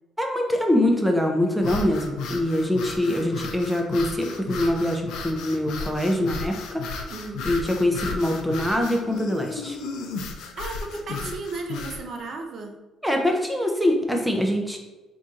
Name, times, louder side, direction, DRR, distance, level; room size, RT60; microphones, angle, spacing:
voice 1, 0.2-6.8 7.4-9.8 11.2-11.3 13.0-14.8, left 1 dB, ahead, 2 dB, 0.6 m, -24 dB
sound 1, 1.6-12.0, left 4 dB, 80° left, 0.5 m, -34 dB
voice 2, 7.1-7.5 10.4-12.8, right 3 dB, 55° right, 3 dB, 0.6 m, -35 dB
3.8 x 2.7 x 3.7 m, 1.1 s
cardioid pair, 100°, 0 cm